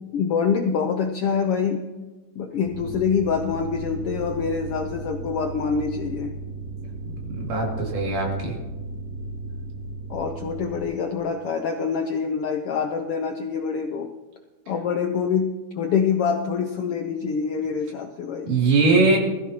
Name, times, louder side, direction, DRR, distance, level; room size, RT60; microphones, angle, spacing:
voice 1, 0.1-1.9 2.3-6.3 10.1-14.1 14.7-18.5, left 6 dB, 75° left, 4 dB, 1.3 m, -25 dB
sound 1, 2.6-10.8, right 3 dB, 55° right, 5.6 m, -35 dB
voice 2, 7.3-8.6 18.5-19.2, right 3 dB, 80° right, -1 dB, 4.1 m, -21 dB
20.0 x 14.0 x 3.0 m, 1.2 s
omnidirectional pair, 3.6 m